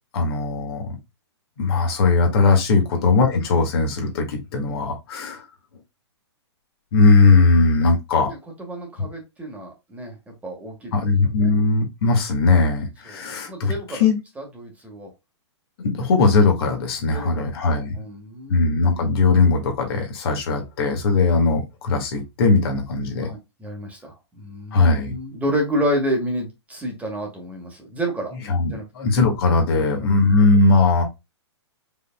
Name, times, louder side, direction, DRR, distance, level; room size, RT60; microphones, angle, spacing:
voice 1, 0.1-0.9 1.6-5.4 6.9-8.3 10.9-14.2 15.8-18.0 18.5-23.3 24.7-25.1 28.5-31.0, left 3 dB, 55° left, 1.8 m, -19 dB
voice 2, 8.3-10.2 10.4-10.9 11.4-11.5 13.0-14.1 14.4-15.1 17.1-17.5 17.9-18.6 23.2-24.8 25.0-28.3 28.7-28.8 29.7-29.8, equal, 10° right, 1.5 m, -29 dB
4.8 x 4.4 x 2.2 m
hypercardioid pair, 140°, 15 cm